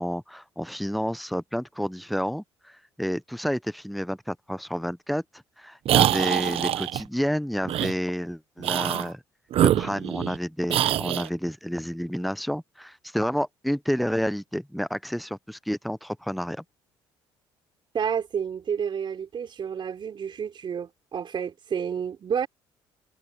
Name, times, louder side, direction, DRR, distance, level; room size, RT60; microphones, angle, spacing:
voice 1, 0.0-5.2 5.6-9.2 9.6-16.6, equal, ahead, 0.6 m, -30 dB
sound 1, 5.9-7.0 7.7-7.9 8.6-9.1 9.5-10.4 10.7-11.3, right 12 dB, 65° right, 1.0 m, -24 dB
voice 2, 17.9-22.5, right 7 dB, 50° right, 4.0 m, -30 dB
supercardioid pair, 75°, 11 cm